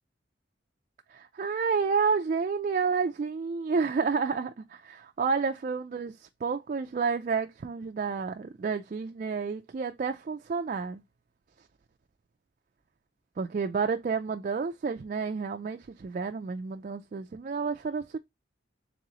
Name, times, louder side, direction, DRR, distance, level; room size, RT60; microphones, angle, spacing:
voice 1, 1.1-11.0 13.4-18.2, right 5 dB, 45° right, 0.3 m, -30 dB
3.7 x 3.0 x 3.8 m
head